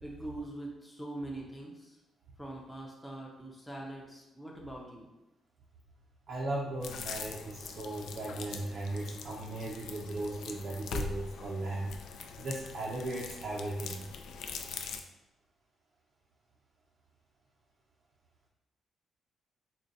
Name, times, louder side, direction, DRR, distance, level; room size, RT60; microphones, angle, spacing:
voice 1, 0.0-2.0 2.4-5.1, right 1 dB, 5° left, -3 dB, 0.5 m, -43 dB
voice 2, 6.3-11.9 12.4-14.0, right 2 dB, 50° right, -2 dB, 0.4 m, -37 dB
sound 1, 6.8-15.0, left 5 dB, 80° left, 0.3 m, -42 dB
3.7 x 2.2 x 3.9 m, 0.96 s
cardioid pair, 140°, 0 cm